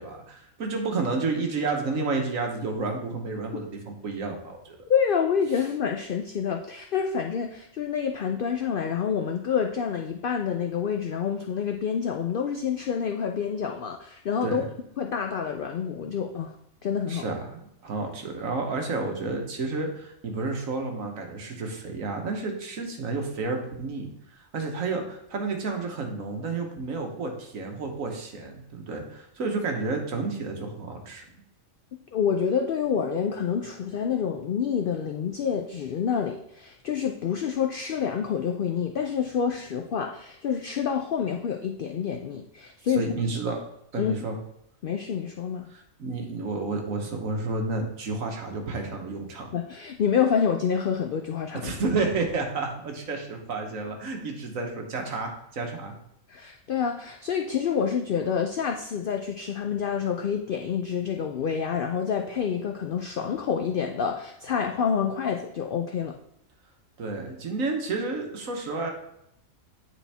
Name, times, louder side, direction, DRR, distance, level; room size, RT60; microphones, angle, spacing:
voice 1, 0.0-4.8 14.4-14.6 17.1-31.3 43.0-43.6 43.9-44.4 45.7-49.5 51.5-55.9 67.0-68.9, right 3 dB, 70° right, 3 dB, 1.5 m, -31 dB
voice 2, 4.9-14.6 15.0-16.5 16.8-17.2 32.1-43.1 44.0-44.1 44.8-45.7 49.5-51.7 56.3-66.2, left 7 dB, 75° left, 4 dB, 0.5 m, -27 dB
9.1 x 4.3 x 3.4 m, 0.76 s
omnidirectional pair, 1.4 m